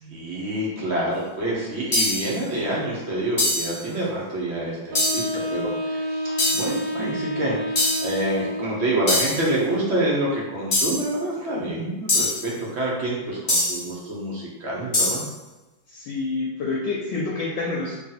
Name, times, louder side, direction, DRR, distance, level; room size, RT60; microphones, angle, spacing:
voice 1, 0.0-15.2, right 1 dB, 55° right, -5 dB, 0.7 m, -27 dB
sound 1, 1.9-2.4 3.4-3.8 4.9-5.3 6.4-6.8 7.7-8.1 9.1-9.5 10.7-11.1 12.1-12.5 13.5-13.9 14.9-15.3, left 2 dB, 40° left, 0.7 m, -23 dB
Wind instrument woodwind instrument, 4.9-9.0, equal, 80° right, 1.3 m, -29 dB
voice 2, 15.9-18.0, left 3 dB, 75° left, -3 dB, 1.2 m, -27 dB
3.1 x 2.7 x 4.0 m, 1.1 s
omnidirectional pair, 2.1 m